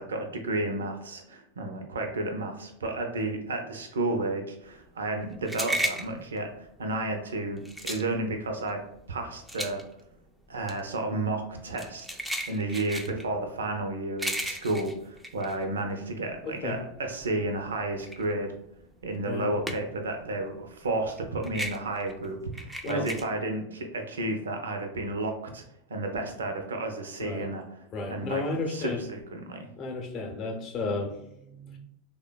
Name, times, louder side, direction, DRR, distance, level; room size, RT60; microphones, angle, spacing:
voice 1, 0.0-8.8 9.1-9.8 10.5-12.1 12.5-18.5 19.0-25.6 25.9-29.7, right 2 dB, 75° right, 4 dB, 0.4 m, -32 dB
sound 1, 4.7-16.3 16.7-20.1 20.4-23.2, right 1 dB, 5° right, 0.3 m, -35 dB
voice 2, 16.4-16.8 19.2-19.5 22.8-23.1 27.2-27.5 27.9-29.0 29.8-31.8, left 3 dB, 40° left, 2 dB, 0.6 m, -33 dB
3.2 x 2.1 x 2.2 m, 0.77 s
figure-of-eight pair, 90°, 0 cm